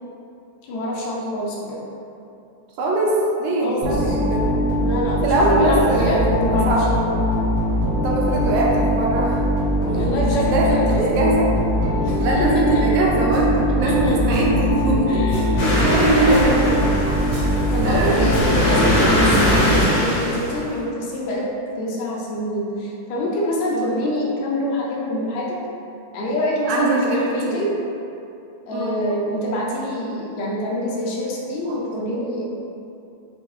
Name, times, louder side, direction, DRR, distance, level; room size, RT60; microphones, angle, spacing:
voice 1, 0.7-1.8 3.6-4.2 4.8-7.1 9.9-11.2 12.0-12.9 13.7-14.4 15.1-16.6 17.7-21.5 21.8-25.6 26.1-27.8 28.7-32.5, left 1 dB, 80° left, -4 dB, 1.8 m, -26 dB
voice 2, 2.8-4.5 5.2-6.9 8.0-9.5 10.5-11.5 12.2-16.8 17.7-18.5 20.7-20.9 23.7-23.9 26.6-27.6 28.7-29.2 31.7-31.8 32.1-32.2, right 2 dB, 80° right, -3 dB, 1.9 m, -22 dB
sound 1, 3.8-20.3, equal, 45° right, 1.3 m, -21 dB
sound 2, 15.6-20.8, equal, 60° left, 1.4 m, -21 dB
5.3 x 2.3 x 3.0 m, 2.7 s
omnidirectional pair, 3.3 m